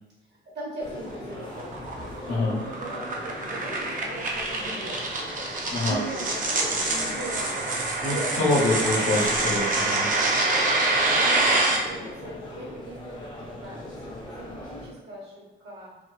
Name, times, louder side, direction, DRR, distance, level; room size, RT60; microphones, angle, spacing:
voice 1, 0.4-5.0 5.8-7.6 8.0-8.4 11.1-16.0, right 2 dB, 60° right, -4 dB, 1.0 m, -40 dB
sound 1, 0.8-14.9, left 1 dB, 20° left, 0.6 m, -40 dB
sound 2, 1.1-11.8, right 2 dB, 40° right, 0.5 m, -26 dB
voice 2, 5.7-6.0 8.0-10.1, left 2 dB, 75° left, -6 dB, 0.7 m, -25 dB
2.4 x 2.3 x 2.2 m, 1.1 s
cardioid pair, 90°, 20 cm